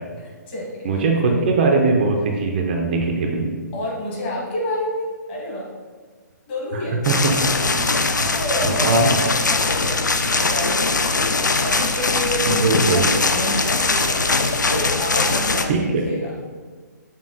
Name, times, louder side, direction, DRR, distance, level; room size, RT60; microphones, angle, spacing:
voice 1, 0.2-1.4 3.7-5.7 6.5-8.0 8.3-11.2 11.6-14.2 14.7-16.3, left 1 dB, 35° left, -4 dB, 1.3 m, -29 dB
voice 2, 0.8-3.5 7.1-7.3 7.6-7.8 8.8-9.2 12.6-13.0 15.7-16.0, right 3 dB, 35° right, 2 dB, 0.5 m, -20 dB
sound 1, 7.0-15.6, left 3 dB, 75° left, 0.4 m, -21 dB
5.9 x 3.6 x 2.5 m, 1.5 s
figure-of-eight pair, 130°, 10 cm